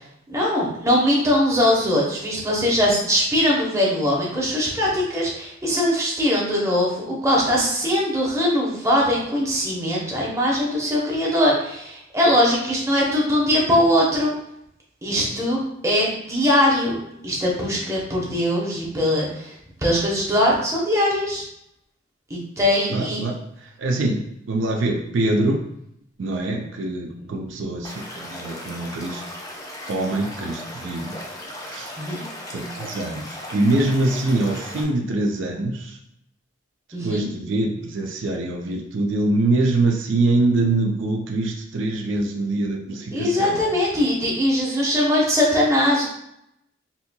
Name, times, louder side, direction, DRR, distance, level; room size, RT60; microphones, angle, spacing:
voice 1, 0.3-14.3 15.0-19.5 19.8-21.4 22.3-23.2 32.0-32.2 36.9-37.3 43.1-46.0, left 1 dB, 15° right, -4 dB, 0.8 m, -21 dB
voice 2, 22.9-23.3 23.8-25.7 26.2-29.2 29.9-31.2 31.7-31.9 32.5-36.0 37.0-43.6, right 2 dB, 75° right, 1 dB, 0.5 m, -24 dB
Stream / Liquid, 27.8-34.8, left 1 dB, 20° left, 0.5 m, -37 dB
4.2 x 2.7 x 2.2 m, 0.77 s
head